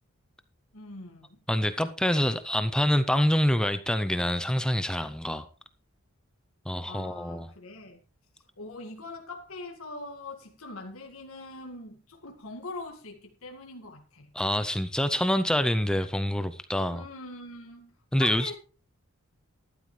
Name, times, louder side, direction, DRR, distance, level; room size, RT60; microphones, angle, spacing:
voice 1, 0.7-1.4 6.9-8.0 8.6-14.3 16.9-18.6, left 3 dB, 75° left, 2.0 m, -42 dB
voice 2, 1.5-5.5 6.7-7.5 14.3-17.0 18.1-18.5, left 1 dB, 5° left, 0.5 m, -26 dB
13.5 x 12.0 x 3.2 m
head